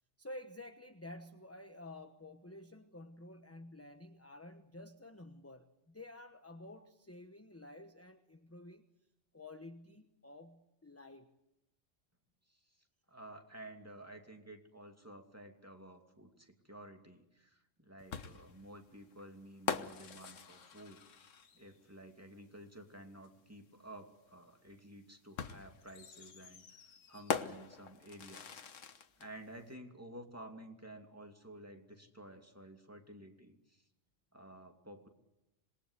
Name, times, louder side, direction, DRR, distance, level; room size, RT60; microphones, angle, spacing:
voice 1, 0.2-8.8 9.3-11.3, left 1 dB, 10° left, 8 dB, 1.1 m, -51 dB
voice 2, 13.1-28.6 29.2-33.8 34.3-35.1, right 1 dB, 10° right, 4 dB, 2.8 m, -53 dB
sound 1, 18.1-21.8 23.2-23.3 25.4-29.3, left 6 dB, 85° left, 1.5 m, -42 dB
26.5 x 21.0 x 8.3 m, 0.92 s
omnidirectional pair, 1.3 m